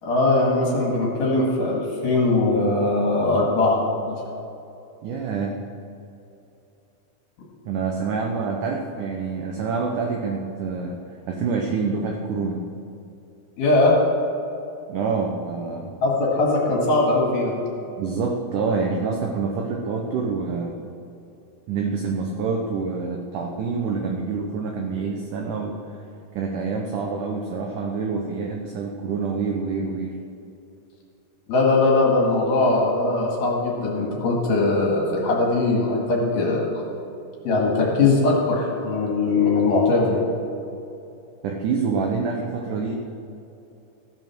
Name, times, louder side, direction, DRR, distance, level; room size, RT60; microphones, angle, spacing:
voice 1, 0.0-4.2 13.6-14.0 16.0-17.6 31.5-36.6 37.4-40.2, left 2 dB, 60° left, -2 dB, 3.1 m, -20 dB
voice 2, 5.0-5.6 7.7-11.0 11.3-12.6 14.9-15.9 18.0-20.8 21.7-25.8 26.3-30.1 41.4-43.0, right 4 dB, 80° right, 2 dB, 1.8 m, -26 dB
14.5 x 7.6 x 6.1 m, 2.8 s
omnidirectional pair, 4.7 m